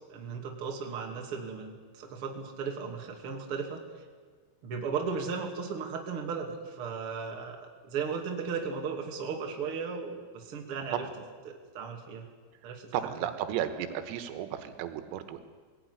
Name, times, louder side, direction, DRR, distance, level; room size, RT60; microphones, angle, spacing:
voice 1, 0.1-3.8 4.6-7.6 7.9-11.1 11.4-12.3 12.6-12.9, right 5 dB, 35° right, 2 dB, 2.5 m, -36 dB
voice 2, 12.9-15.4, right 10 dB, 90° right, 9 dB, 4.1 m, -33 dB
21.5 x 16.5 x 9.8 m, 1.5 s
omnidirectional pair, 5.9 m